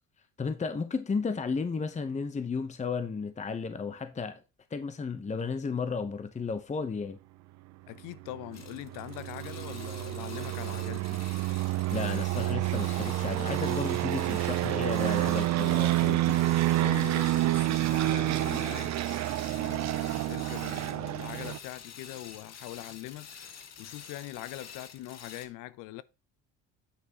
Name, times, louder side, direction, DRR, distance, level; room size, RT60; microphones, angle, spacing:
voice 1, 0.4-4.4 4.7-7.2 11.9-16.4, left 5 dB, 20° left, 0.9 m, -33 dB
voice 2, 7.9-11.2 16.8-19.0 19.6-23.3 23.8-26.0, left 15 dB, 70° left, 0.7 m, -42 dB
sound 1, 8.3-21.6, right 16 dB, 55° right, 0.6 m, -29 dB
sound 2, 8.5-25.5, left 7 dB, 50° left, 1.7 m, -48 dB
8.5 x 6.0 x 2.9 m
supercardioid pair, 80°, 32 cm